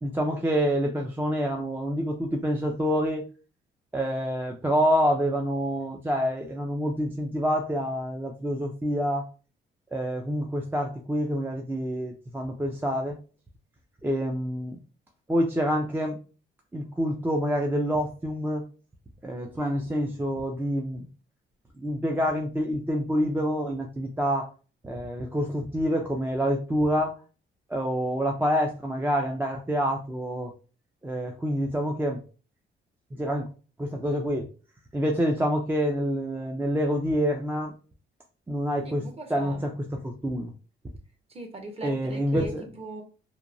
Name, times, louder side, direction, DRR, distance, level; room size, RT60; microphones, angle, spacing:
voice 1, 0.0-3.2 3.9-9.3 9.9-13.2 14.0-14.8 15.3-16.2 16.7-18.7 19.2-21.1 21.8-24.5 24.8-27.1 27.7-30.5 31.0-32.2 33.1-33.5 33.8-34.5 34.9-37.7 38.5-40.5 41.8-42.7, equal, 10° right, 1 dB, 0.4 m, -27 dB
voice 2, 38.8-39.7 41.3-43.0, right 2 dB, 30° right, 4 dB, 0.8 m, -40 dB
2.8 x 2.2 x 2.5 m, 0.36 s
cardioid pair, 90°, 20 cm